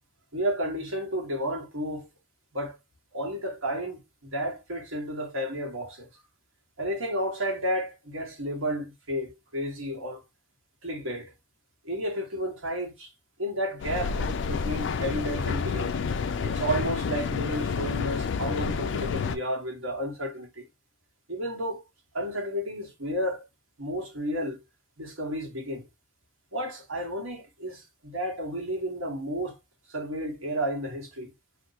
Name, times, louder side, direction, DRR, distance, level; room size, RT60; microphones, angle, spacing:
voice 1, 0.3-2.1 2.5-2.8 3.1-6.2 6.8-10.2 10.8-11.3 11.8-13.1 13.4-15.9 16.4-20.7 21.3-21.8 22.1-23.4 23.8-24.6 25.0-25.9 26.5-29.6 29.9-31.3, equal, 80° right, 1.5 m, -32 dB
Mechanical fan, 13.8-19.4, left 5 dB, 60° left, 0.3 m, -29 dB
2.6 x 2.5 x 4.0 m
head